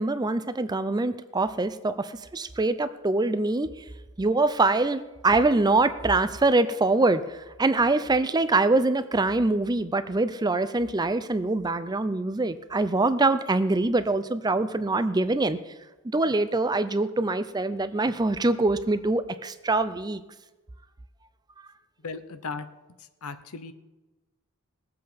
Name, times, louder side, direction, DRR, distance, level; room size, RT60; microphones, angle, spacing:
voice 1, 0.0-3.8 4.2-15.6 16.0-20.2, right 2 dB, 20° right, 12 dB, 0.5 m, -24 dB
voice 2, 22.0-22.7 23.0-23.7, left 4 dB, 75° left, 11 dB, 0.9 m, -37 dB
19.5 x 7.8 x 5.2 m, 1.1 s
head